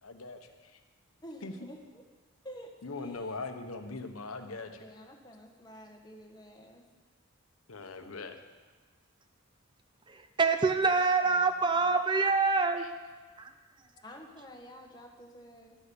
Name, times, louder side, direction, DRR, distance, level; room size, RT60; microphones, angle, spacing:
voice 1, 0.0-0.7 1.4-1.7 2.8-4.7 7.7-8.4 12.8-12.9, left 3 dB, 85° left, 6 dB, 1.2 m, -41 dB
voice 2, 1.2-2.0 2.4-3.4 4.5-6.8 11.4-11.9 14.0-15.8, equal, 20° left, 1 dB, 1.4 m, -50 dB
voice 3, 10.1-12.9 13.4-13.5, right 4 dB, 20° right, 8 dB, 0.5 m, -26 dB
12.5 x 8.9 x 7.0 m, 1.3 s
head